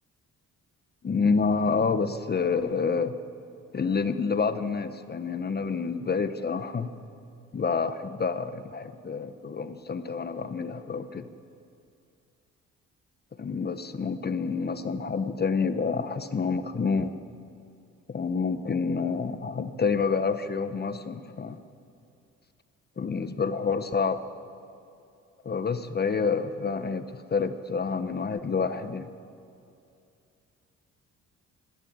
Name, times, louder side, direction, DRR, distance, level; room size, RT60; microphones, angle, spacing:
voice 1, 1.0-3.1 3.7-6.9 7.5-11.2 13.4-17.1 18.1-21.6 23.0-24.2 25.4-27.0 27.3-29.1, left 5 dB, 35° left, 10 dB, 1.0 m, -28 dB
20.5 x 15.5 x 8.9 m, 2.5 s
cardioid pair, 90°, 30 cm